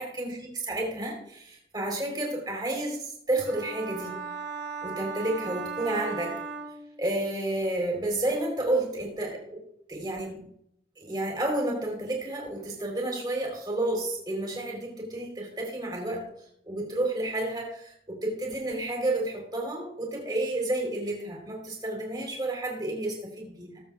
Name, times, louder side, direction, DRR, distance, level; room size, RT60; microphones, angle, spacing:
voice 1, 0.0-4.3 4.8-6.4 7.0-10.5 11.0-16.2 16.6-23.8, right 1 dB, 25° right, 0 dB, 3.6 m, -31 dB
sound 1, 3.5-7.3, right 5 dB, 85° right, 1.8 m, -37 dB
19.5 x 8.2 x 2.4 m, 0.72 s
head